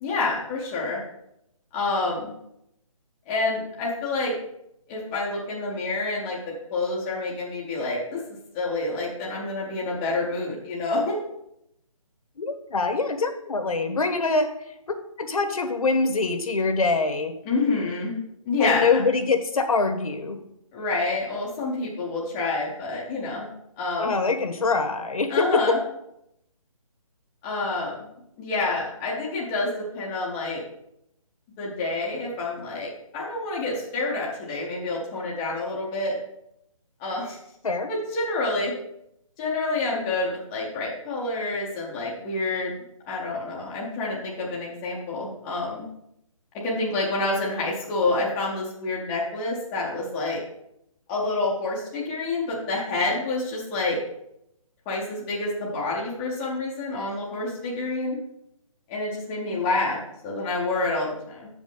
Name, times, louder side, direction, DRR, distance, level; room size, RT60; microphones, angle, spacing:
voice 1, 0.0-1.0 1.7-2.3 3.3-4.3 4.9-8.2 8.5-11.2 17.5-18.2 18.4-19.0 20.7-23.5 23.8-24.1 25.3-25.8 27.4-28.1 28.4-30.6 31.6-36.2 37.0-37.4 37.9-38.7 39.4-45.8 46.6-50.4 51.1-54.0 54.9-58.2 58.9-61.5, left 2 dB, 10° left, -5 dB, 0.6 m, -28 dB
voice 2, 12.4-14.5 15.2-17.3 18.6-20.4 24.0-25.8 37.6-37.9, left 4 dB, 75° left, 7 dB, 1.2 m, -24 dB
7.2 x 5.2 x 5.3 m, 0.79 s
hypercardioid pair, 170°, 18 cm